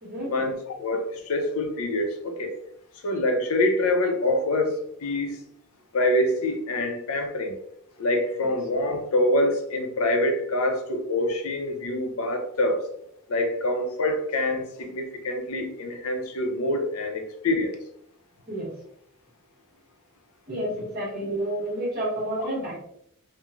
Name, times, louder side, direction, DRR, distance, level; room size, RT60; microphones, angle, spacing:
voice 1, 0.2-2.5 3.0-5.4 5.9-7.5 8.0-12.8 13.3-17.7 22.4-22.5, left 1 dB, 80° left, 4 dB, 0.5 m, -25 dB
voice 2, 20.5-22.8, right 1 dB, 45° right, -3 dB, 1.1 m, -30 dB
3.0 x 2.1 x 2.4 m, 0.73 s
head